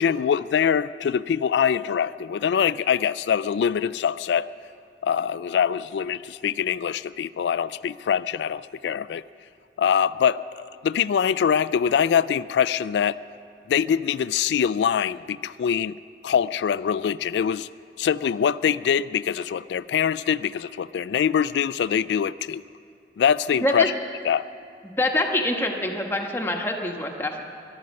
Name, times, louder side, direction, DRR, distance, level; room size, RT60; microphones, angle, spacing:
voice 1, 0.0-4.5 5.0-9.2 9.8-13.2 13.7-16.0 16.2-17.7 18.0-22.6 23.2-23.9 24.2-24.5, left 8 dB, 80° left, 17 dB, 0.3 m, -23 dB
voice 2, 25.0-27.4, left 1 dB, 15° left, 2 dB, 1.2 m, -25 dB
21.5 x 12.0 x 5.3 m, 2.5 s
head